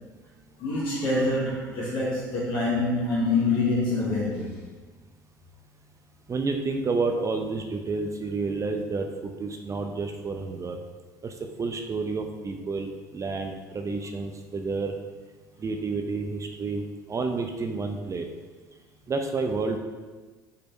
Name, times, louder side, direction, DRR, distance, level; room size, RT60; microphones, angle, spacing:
voice 1, 0.6-4.6, left 2 dB, 50° left, -8 dB, 1.7 m, -26 dB
voice 2, 6.3-10.8 11.2-14.9 15.6-16.8 17.1-18.3 19.1-19.8, right 3 dB, 30° right, 4 dB, 0.7 m, -30 dB
5.3 x 4.3 x 5.3 m, 1.3 s
hypercardioid pair, 65°, 11 cm